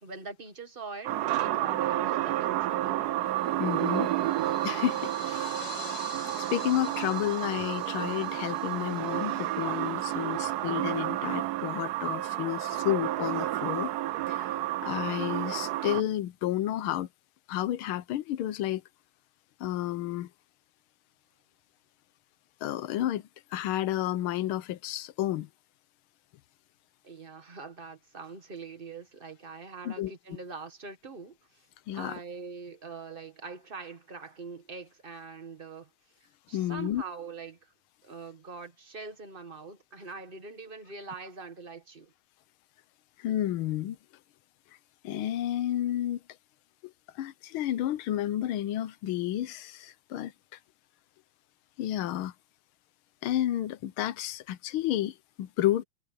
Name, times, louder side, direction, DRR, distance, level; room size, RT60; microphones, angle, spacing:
voice 1, 0.0-3.0 27.0-31.4 31.9-35.9 36.5-37.7 38.0-42.1, right 4 dB, 25° right, 1.7 m, -43 dB
sound 1, 1.1-16.0, right 14 dB, 85° right, 0.8 m, -31 dB
sound 2, 3.4-10.2, left 4 dB, 60° left, 7.1 m, -47 dB
voice 2, 3.6-4.1 4.6-6.1 6.4-13.9 14.3-17.1 17.5-18.8 19.6-20.3 22.6-25.5 29.8-30.1 31.9-32.2 36.5-37.0 43.2-44.0 45.0-46.2 46.8-46.9 47.2-50.6 51.8-52.3 53.2-55.8, left 13 dB, 90° left, 1.6 m, -31 dB
omnidirectional pair, 2.3 m